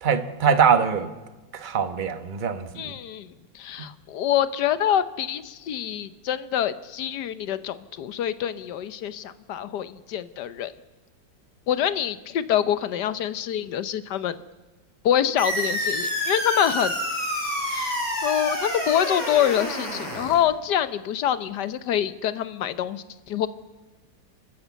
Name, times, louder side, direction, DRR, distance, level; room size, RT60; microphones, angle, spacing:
voice 1, 0.0-1.1 1.5-2.9, right 7 dB, 30° right, 10 dB, 1.0 m, -22 dB
voice 2, 2.8-3.3 3.5-10.7 11.7-14.4 15.0-16.9 17.7-23.5, left 10 dB, 70° left, 13 dB, 1.4 m, -26 dB
sound 1, 15.4-20.4, equal, 20° left, 6.5 m, -28 dB
28.0 x 13.5 x 8.3 m, 1.2 s
omnidirectional pair, 2.0 m